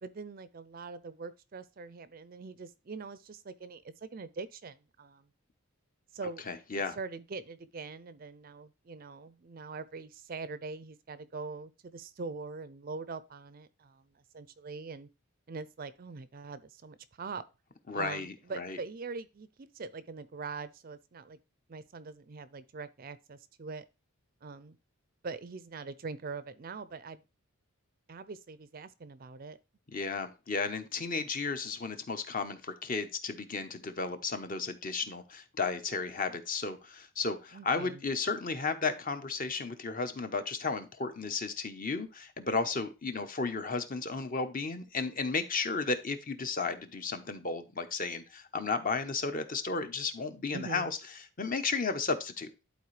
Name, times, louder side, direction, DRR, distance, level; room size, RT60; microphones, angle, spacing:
voice 1, 0.0-5.3 6.1-6.4 6.7-14.0 14.3-15.1 15.5-17.4 17.9-21.4 21.7-23.9 24.4-24.8 25.2-27.2 28.1-29.6 37.5-38.0 50.5-50.9, right 4 dB, 40° right, 0.4 m, -43 dB
voice 2, 6.5-7.0 17.9-18.8 29.9-51.0 51.4-52.6, left 4 dB, 40° left, 0.8 m, -34 dB
11.5 x 4.2 x 3.2 m
head